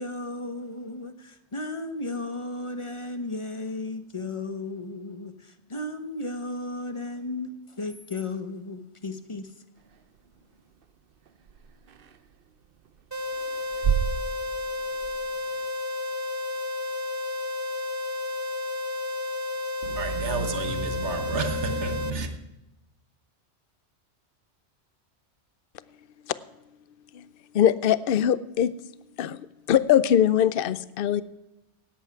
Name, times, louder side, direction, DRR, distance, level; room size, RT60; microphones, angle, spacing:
voice 1, 0.0-9.5, left 2 dB, 30° left, 0.9 m, -34 dB
sound 1, 9.8-15.7, right 7 dB, 55° right, 0.9 m, -33 dB
sound 2, 13.1-22.1, left 2 dB, 25° right, 0.4 m, -32 dB
voice 2, 19.8-22.3, right 3 dB, 80° right, 1.6 m, -30 dB
voice 3, 27.5-28.8 29.2-31.2, left 10 dB, 60° left, 0.7 m, -22 dB
18.0 x 8.2 x 4.7 m
omnidirectional pair, 1.2 m